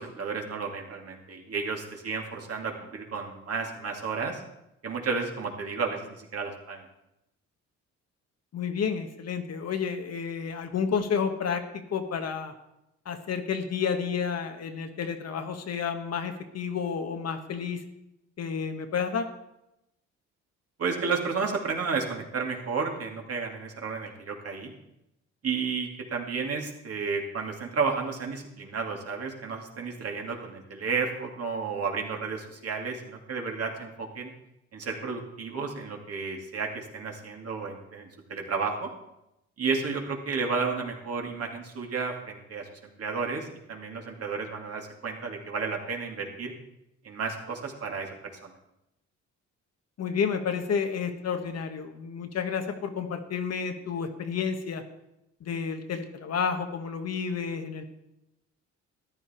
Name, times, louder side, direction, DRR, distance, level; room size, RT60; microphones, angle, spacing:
voice 1, 0.0-4.4 4.8-6.8 20.8-24.7 25.4-34.3 34.7-38.9 39.6-42.7 43.0-46.5 47.0-48.1 48.4-48.5, right 5 dB, 50° right, 1 dB, 2.6 m, -32 dB
voice 2, 8.5-12.5 13.0-17.8 18.4-19.3 50.0-54.8 55.4-57.8, left 6 dB, 55° left, 6 dB, 1.4 m, -30 dB
13.5 x 10.5 x 4.5 m, 0.86 s
cardioid pair, 90°, 30 cm